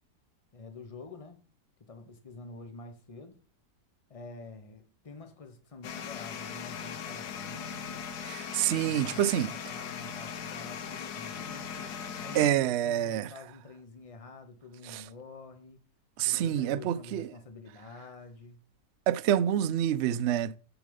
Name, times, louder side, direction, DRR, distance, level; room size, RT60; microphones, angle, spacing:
voice 1, 0.5-1.4 1.8-3.4 4.1-8.2 8.8-15.8 16.2-18.6, left 3 dB, 25° left, 1.0 m, -47 dB
Car Ignition and Idle, 5.8-12.5, left 7 dB, 75° left, 1.4 m, -39 dB
voice 2, 8.2-9.5 12.3-13.3 14.9-15.0 16.2-17.3 19.1-20.6, right 11 dB, 80° right, 0.6 m, -27 dB
7.1 x 7.0 x 5.2 m
omnidirectional pair, 1.7 m